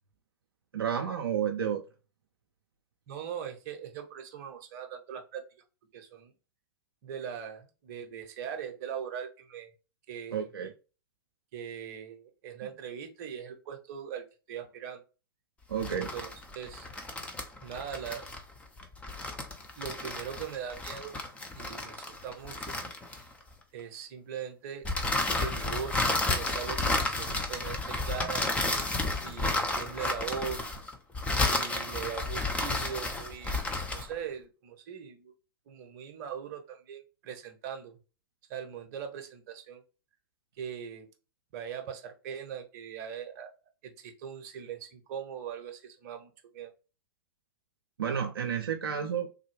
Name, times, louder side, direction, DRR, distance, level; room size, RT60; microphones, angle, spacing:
voice 1, 0.7-1.8 10.3-10.7 15.7-16.1 48.0-49.3, right 8 dB, 75° right, 0.4 m, -31 dB
voice 2, 3.1-5.4 5.9-6.3 7.0-9.7 10.1-10.4 11.5-15.0 15.9-16.3 16.5-16.9 17.6-18.3 19.8-21.1 21.5-22.7 23.1-23.3 23.7-24.9 25.4-26.1 26.3-28.4 29.2-30.7 31.4-33.6 33.9-35.3 35.7-38.0 38.5-39.8 40.6-41.1 41.5-43.5 43.8-46.7, right 8 dB, 45° right, 0.7 m, -40 dB
sound 1, 15.7-23.5 24.8-34.1, left 2 dB, 10° left, 0.5 m, -32 dB
3.5 x 2.2 x 3.0 m
figure-of-eight pair, 100°, 13 cm